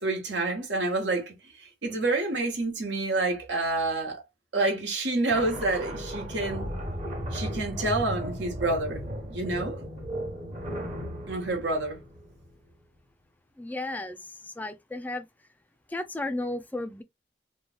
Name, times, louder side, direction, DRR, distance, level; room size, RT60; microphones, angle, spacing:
voice 1, 0.0-4.2 4.5-6.7 7.3-9.8 11.3-12.0, right 2 dB, 85° right, 1.2 m, -28 dB
sound 1, 5.3-12.7, equal, 35° right, 0.9 m, -35 dB
voice 2, 13.6-15.2 15.9-17.0, left 2 dB, 10° left, 0.3 m, -34 dB
3.0 x 2.3 x 3.4 m
head